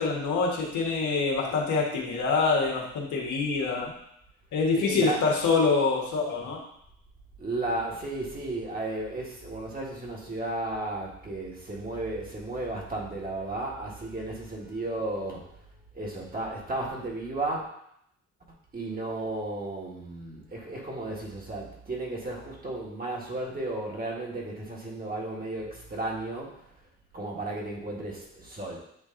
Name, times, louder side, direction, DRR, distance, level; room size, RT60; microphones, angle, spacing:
voice 1, 0.0-3.9 4.5-6.6, left 4 dB, 75° left, -1 dB, 1.5 m, -25 dB
voice 2, 4.8-5.2 7.4-15.5 15.9-17.6 18.7-26.5 27.1-28.8, right 2 dB, 30° right, -2 dB, 1.7 m, -34 dB
8.2 x 3.0 x 3.8 m, 0.74 s
cardioid pair, 90°, 30 cm